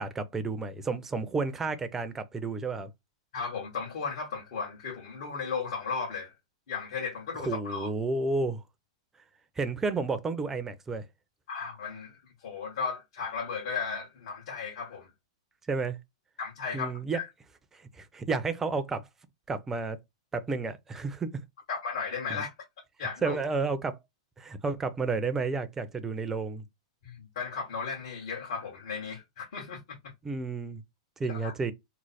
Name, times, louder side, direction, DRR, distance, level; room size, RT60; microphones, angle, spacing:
voice 1, 0.0-2.9 7.5-8.6 9.6-11.0 15.7-16.0 16.7-17.2 17.7-19.0 19.5-20.0 20.3-21.4 22.3-22.4 23.2-24.0 24.4-26.6 30.2-30.8 31.2-31.7, right 4 dB, 15° right, 0.5 m, -31 dB
voice 2, 3.3-6.3 6.7-7.9 11.5-15.1 16.4-17.3 21.7-22.5 23.0-23.4 27.0-30.0 31.3-31.5, left 5 dB, 65° left, 1.4 m, -35 dB
3.1 x 2.0 x 4.1 m
hypercardioid pair, 125°, 3 cm